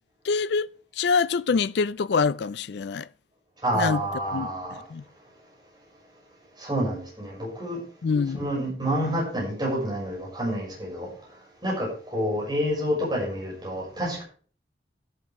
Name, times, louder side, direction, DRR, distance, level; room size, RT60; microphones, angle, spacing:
voice 1, 0.2-3.1 3.7-4.0 4.3-4.5 4.9-5.0 8.0-8.4, left 5 dB, 70° left, 0.4 m, -25 dB
voice 2, 3.6-4.8 6.6-7.8 8.3-11.1 11.6-14.2, equal, 25° right, 6.5 m, -28 dB
12.0 x 11.5 x 3.7 m
head